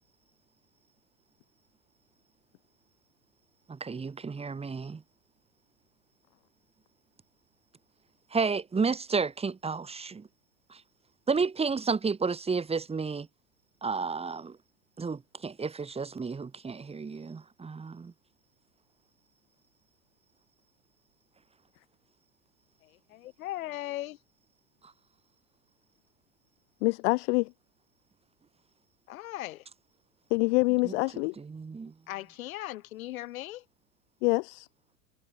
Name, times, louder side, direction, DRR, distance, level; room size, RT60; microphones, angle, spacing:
voice 1, 3.7-5.0 8.3-10.3 10.7-10.8 11.3-13.3 13.8-14.6 15.0-18.1 24.8-24.9 30.8-30.9 31.4-31.9, right 5 dB, 15° right, 4.9 m, -31 dB
voice 2, 23.1-24.2 29.1-29.6 32.1-33.6, left 15 dB, 70° left, 6.3 m, -38 dB
voice 3, 26.8-27.5 30.3-31.3 34.2-34.7, left 27 dB, 55° left, 1.4 m, -26 dB
supercardioid pair, 125°, 42 cm